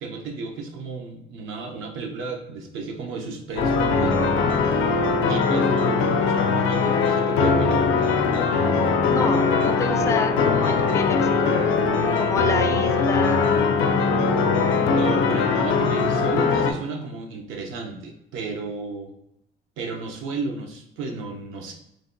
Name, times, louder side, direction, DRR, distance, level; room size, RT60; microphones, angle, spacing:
voice 1, 0.0-4.2 4.7-4.9 5.3-8.6 14.7-19.1 19.8-21.7, right 4 dB, 85° right, 2 dB, 0.7 m, -33 dB
sound 1, 3.6-16.7, left 4 dB, 85° left, 0.4 m, -21 dB
voice 2, 9.1-13.6, left 4 dB, 15° left, 5 dB, 0.4 m, -29 dB
3.2 x 2.2 x 3.8 m, 0.82 s
cardioid pair, 90°, 20 cm